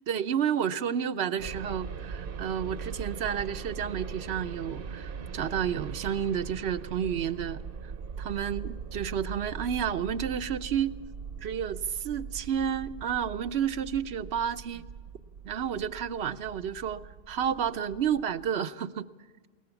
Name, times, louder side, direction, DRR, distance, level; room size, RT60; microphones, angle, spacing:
voice 1, 0.1-7.9 8.2-11.0 11.4-14.9 15.4-19.1, right 8 dB, 85° right, 10 dB, 1.0 m, -31 dB
sound 1, 1.4-18.5, right 6 dB, 60° right, 0.9 m, -41 dB
21.0 x 19.0 x 7.0 m, 1.5 s
omnidirectional pair, 1.1 m